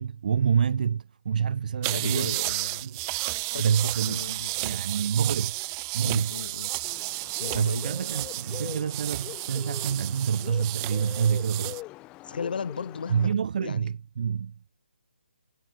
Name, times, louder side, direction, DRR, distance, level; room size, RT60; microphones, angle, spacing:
voice 1, 0.0-2.3 2.8-3.0 3.6-5.6 5.9-6.4 7.5-11.8 13.1-14.8, right 7 dB, 45° right, 4.8 m, -27 dB
sound 1, 1.8-11.8, right 30 dB, 20° right, 1.2 m, -32 dB
voice 2, 1.9-2.9 3.5-4.8 6.0-6.7 7.4-7.9 12.2-13.3 13.6-13.9, left 6 dB, 55° left, 4.7 m, -36 dB
Bird, 6.8-13.3, left 20 dB, 15° left, 1.1 m, -43 dB
hypercardioid pair, 160°, 6 cm